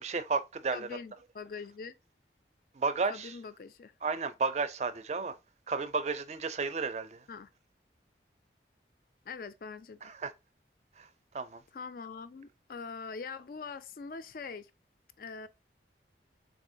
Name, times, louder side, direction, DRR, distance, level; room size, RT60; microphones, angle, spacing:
voice 1, 0.0-0.9 2.7-3.4 4.0-5.4 5.7-7.2 10.0-10.3 11.0-11.1 11.3-11.6, right 4 dB, 40° right, 0.4 m, -32 dB
voice 2, 0.7-1.9 3.0-3.9 7.3-7.5 9.3-10.1 11.7-14.7 15.2-15.5, left 5 dB, 50° left, 0.4 m, -43 dB
3.7 x 3.5 x 2.6 m
head